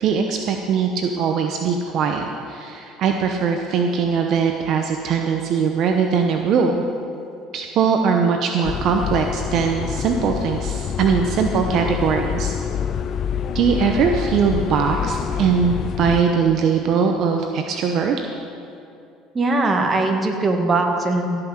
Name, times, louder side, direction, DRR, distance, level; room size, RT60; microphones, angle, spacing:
voice 1, 0.0-6.8 7.5-12.5 13.5-18.2, right 6 dB, 60° right, 4 dB, 0.8 m, -21 dB
sound 1, 8.6-16.2, left 8 dB, 50° left, 0.5 m, -26 dB
voice 2, 19.3-21.4, right 2 dB, 30° right, 3 dB, 1.7 m, -20 dB
16.0 x 5.9 x 7.3 m, 2.5 s
supercardioid pair, 90°, 0 cm